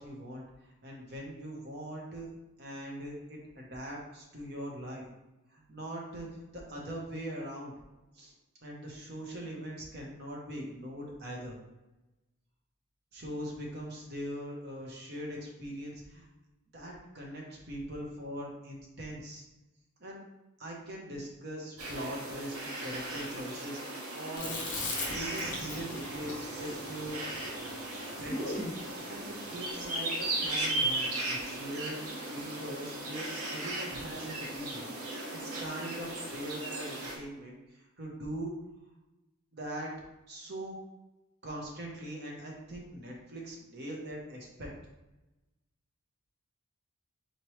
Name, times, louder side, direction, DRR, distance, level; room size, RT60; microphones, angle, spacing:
voice 1, 0.0-2.3 2.6-5.0 5.5-7.7 8.1-8.3 8.6-11.6 13.1-16.3 16.7-19.4 20.0-20.2 20.6-24.6 25.1-27.5 28.2-28.6 29.1-34.9 35.4-38.5 39.5-39.9 40.3-40.8 41.4-44.7, equal, 50° right, -2 dB, 0.9 m, -41 dB
sound 1, 21.8-37.2, right 2 dB, 90° right, 0.9 m, -37 dB
Chewing mastication, 24.4-28.8, left 2 dB, 35° left, 0.8 m, -39 dB
4.4 x 3.1 x 3.1 m, 1.0 s
head